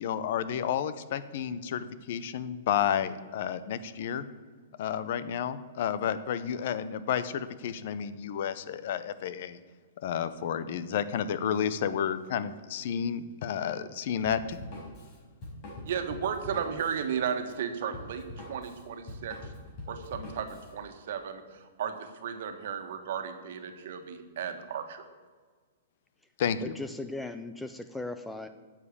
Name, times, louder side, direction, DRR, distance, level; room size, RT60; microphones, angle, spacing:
voice 1, 0.0-4.2 4.8-9.6 10.0-14.6 26.4-26.7, left 8 dB, 55° left, 14 dB, 0.8 m, -31 dB
Drum kit, 14.3-20.7, left 1 dB, 35° left, 4.4 m, -44 dB
voice 2, 15.8-19.4 19.9-25.0, right 7 dB, 60° right, 7 dB, 1.6 m, -34 dB
voice 3, 26.6-28.5, left 2 dB, 5° left, 9 dB, 0.5 m, -38 dB
9.6 x 7.5 x 8.5 m, 1.5 s
hypercardioid pair, 150°, 0 cm